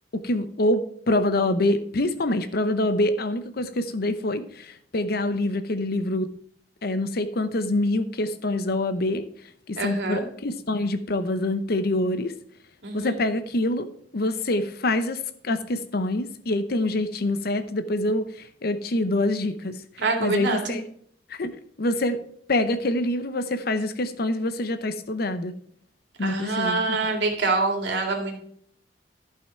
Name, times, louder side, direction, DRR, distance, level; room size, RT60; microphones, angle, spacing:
voice 1, 0.1-6.3 6.8-9.2 9.7-12.3 12.9-13.9 14.1-19.8 20.2-20.8 21.3-22.2 22.5-25.5 26.2-27.0, left 1 dB, 60° left, 11 dB, 0.7 m, -25 dB
voice 2, 9.8-10.3 12.8-13.2 20.0-20.8 26.2-28.4, right 3 dB, 85° right, 1 dB, 2.1 m, -25 dB
11.5 x 5.7 x 4.4 m, 0.63 s
head